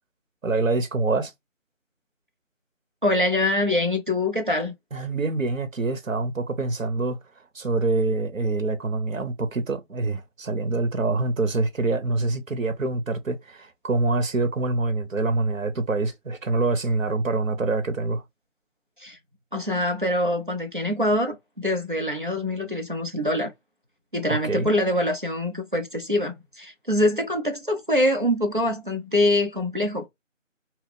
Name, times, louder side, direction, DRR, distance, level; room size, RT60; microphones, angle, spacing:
voice 1, 0.4-1.3 4.9-7.2 7.5-18.2 24.3-24.7, right 3 dB, 80° right, 0.9 m, -25 dB
voice 2, 3.0-4.7 19.0-19.2 19.5-23.5 24.1-30.1, left 1 dB, 40° right, 0.6 m, -24 dB
2.9 x 2.3 x 3.2 m
figure-of-eight pair, 180°, 39 cm